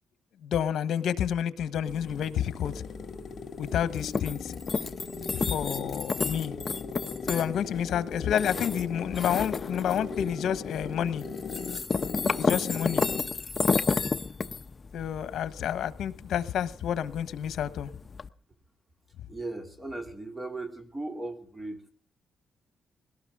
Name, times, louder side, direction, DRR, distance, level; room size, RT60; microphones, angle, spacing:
voice 1, 0.4-2.7 3.6-4.5 5.3-6.5 7.3-11.2 12.4-13.1 14.9-17.9, left 9 dB, 75° left, 1.2 m, -29 dB
sound 1, 1.6-13.4, left 5 dB, 60° left, 2.0 m, -39 dB
sound 2, 1.9-18.3, left 4 dB, 30° left, 0.8 m, -33 dB
voice 2, 19.3-21.9, right 2 dB, 15° right, 2.9 m, -37 dB
21.5 x 18.5 x 3.6 m
cardioid pair, 115°, 0 cm